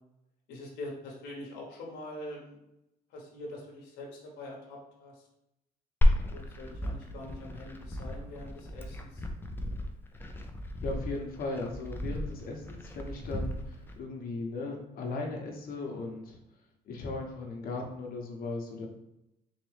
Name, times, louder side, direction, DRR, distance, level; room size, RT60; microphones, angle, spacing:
voice 1, 0.5-2.6 3.1-5.2 6.3-9.2, left 1 dB, 85° left, -2 dB, 1.0 m, -44 dB
Glass, 6.0-14.0, left 1 dB, 10° left, 0.5 m, -32 dB
voice 2, 10.8-16.4 16.8-18.9, left 3 dB, 60° left, 2 dB, 1.0 m, -37 dB
4.0 x 2.9 x 3.3 m, 0.86 s
cardioid pair, 110°, 17 cm